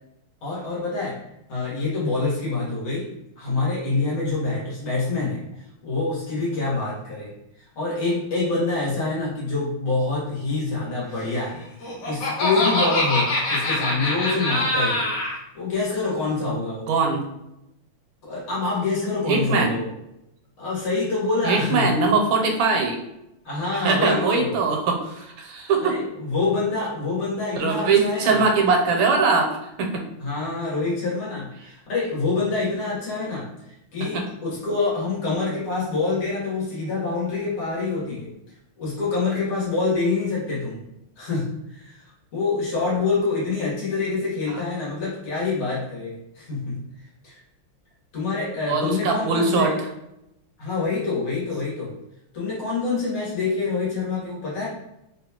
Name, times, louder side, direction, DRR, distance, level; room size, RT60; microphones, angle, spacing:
voice 1, 0.4-1.2 1.5-3.1 3.4-5.4 5.8-7.3 7.8-11.6 12.0-15.1 15.5-16.9 18.2-19.9 20.6-21.9 23.5-24.6 25.8-28.4 30.2-38.3 38.8-40.8 41.2-42.0 42.3-46.8 47.2-47.4 48.1-49.8 50.6-51.9 52.3-54.7, left 3 dB, 80° left, -7 dB, 2.3 m, -26 dB
Laughter, 11.6-15.4, left 1 dB, 60° left, 0.9 m, -24 dB
voice 2, 16.9-17.3 19.3-19.8 21.4-23.0 23.7-26.0 27.6-29.5 29.8-30.0 34.1-34.2 44.5-44.6 48.6-49.7, right 4 dB, 80° right, 2 dB, 1.4 m, -21 dB
4.2 x 2.3 x 2.8 m, 0.85 s
omnidirectional pair, 2.3 m